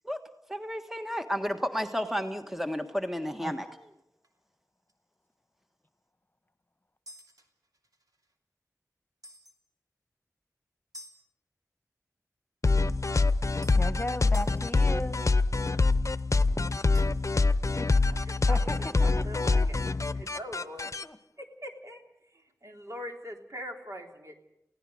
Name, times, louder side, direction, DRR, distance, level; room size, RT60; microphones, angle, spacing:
voice 1, 0.5-3.9, equal, 5° right, 6 dB, 1.5 m, -32 dB
sound 1, 3.8-4.0 4.2-4.4 4.9-5.0 7.1-8.3 9.2-9.6 10.9-11.2 12.9-13.0 13.6-13.8 14.3-14.6 16.9-17.3, left 1 dB, 80° right, 2.8 m, -50 dB
sound 2, 12.6-21.0, left 3 dB, 55° left, 0.7 m, -25 dB
voice 2, 13.7-15.2 17.6-17.9 18.5-19.7 21.0-21.2, left 1 dB, 30° left, 10 dB, 1.5 m, -36 dB
voice 3, 18.1-20.9 21.4-24.5, equal, 55° right, 2 dB, 3.3 m, -43 dB
28.5 x 17.0 x 6.4 m, 0.82 s
wide cardioid pair, 45°, 6 cm